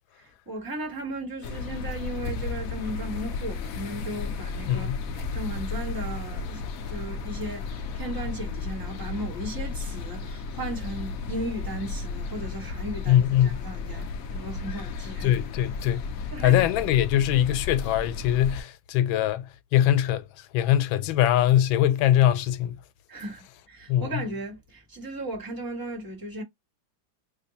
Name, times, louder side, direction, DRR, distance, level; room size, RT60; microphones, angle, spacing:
voice 1, 0.2-6.6 6.9-15.4 16.3-16.6 23.1-26.4, right 1 dB, 15° right, 1.0 m, -36 dB
sound 1, 1.4-18.6, left 4 dB, 70° left, 0.8 m, -34 dB
voice 2, 4.7-5.0 13.1-13.6 15.2-16.0 16.4-19.4 19.7-20.2 20.5-22.7 23.9-24.1, left 12 dB, 90° left, 1.4 m, -22 dB
3.4 x 2.2 x 4.0 m
omnidirectional pair, 2.1 m